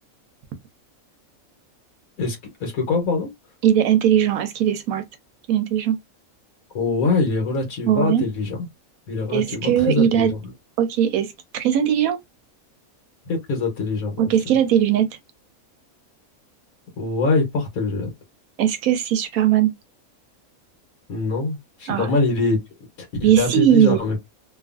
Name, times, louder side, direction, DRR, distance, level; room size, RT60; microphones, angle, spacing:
voice 1, 2.2-3.3 6.7-8.7 9.1-10.4 13.3-14.3 17.0-18.1 21.1-22.9 23.2-24.2, left 3 dB, 80° left, 1.4 m, -23 dB
voice 2, 3.6-5.0 5.5-6.0 7.9-8.2 9.3-10.3 10.8-12.2 14.2-15.1 18.6-19.7 21.9-22.1 23.2-24.0, right 10 dB, 80° right, 1.0 m, -19 dB
2.8 x 2.4 x 2.4 m
omnidirectional pair, 1.5 m